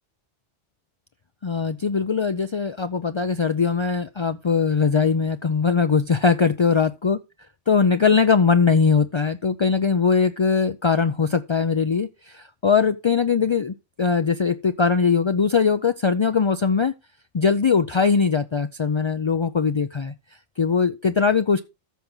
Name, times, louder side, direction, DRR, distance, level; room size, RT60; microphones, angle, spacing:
voice 1, 1.4-7.2 7.7-16.9 17.3-20.1 20.6-21.6, left 5 dB, 50° left, 0.3 m, -21 dB
13.5 x 5.9 x 3.9 m
omnidirectional pair, 1.2 m